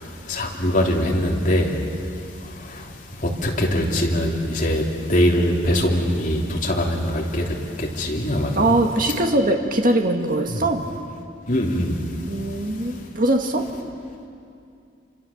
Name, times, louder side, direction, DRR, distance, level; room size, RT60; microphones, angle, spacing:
voice 1, 0.0-8.8 11.5-12.1, equal, 40° left, -1 dB, 3.3 m, -23 dB
voice 2, 8.6-10.9 12.3-13.7, right 1 dB, 45° right, 4 dB, 2.1 m, -21 dB
28.0 x 25.5 x 7.3 m, 2.5 s
head